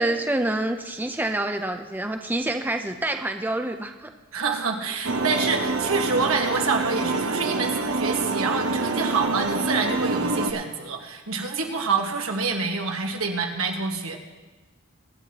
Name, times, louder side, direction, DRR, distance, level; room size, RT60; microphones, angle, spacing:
voice 1, 0.0-4.1, right 1 dB, 10° right, 5 dB, 0.5 m, -27 dB
voice 2, 4.3-14.2, right 4 dB, 85° right, 2 dB, 1.5 m, -27 dB
sound 1, 5.0-10.5, right 3 dB, 70° right, 0.9 m, -26 dB
23.5 x 9.6 x 2.9 m, 1.2 s
head